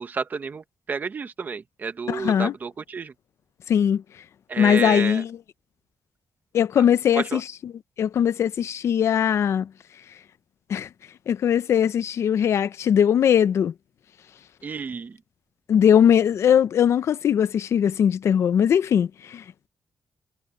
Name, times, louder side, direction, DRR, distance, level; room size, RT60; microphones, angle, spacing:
voice 1, 0.0-3.1 4.5-5.2 7.1-7.4 14.6-15.2, right 5 dB, 35° right, 1.1 m, -31 dB
voice 2, 2.1-2.5 3.7-4.0 4.6-5.4 6.5-7.7 8.0-9.7 10.7-10.9 11.3-13.7 15.7-19.4, left 9 dB, 70° left, 0.7 m, -20 dB
wide cardioid pair, 140°, 5 cm